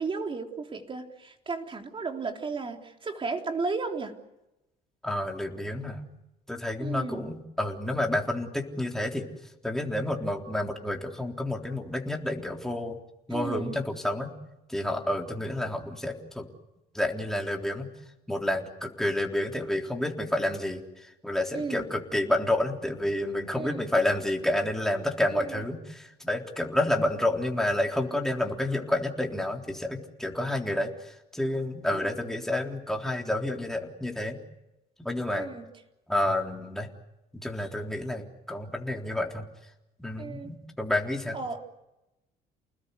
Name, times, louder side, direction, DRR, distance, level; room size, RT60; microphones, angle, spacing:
voice 1, 0.0-4.2 6.8-7.2 13.3-13.8 21.5-21.9 23.6-23.8 25.3-25.7 31.9-32.1 35.3-35.7 40.2-40.6 41.3-41.6, right 4 dB, 30° right, 4 dB, 3.6 m, -34 dB
voice 2, 5.0-6.0 6.5-9.3 9.6-13.0 13.3-14.3 14.7-16.5 16.9-17.9 18.3-20.8 21.2-34.4 35.0-35.5 36.1-36.9 37.3-39.5 40.0-41.4, left 1 dB, 5° left, 1 dB, 3.7 m, -29 dB
30.0 x 20.5 x 8.3 m, 0.92 s
cardioid pair, 110°, 17 cm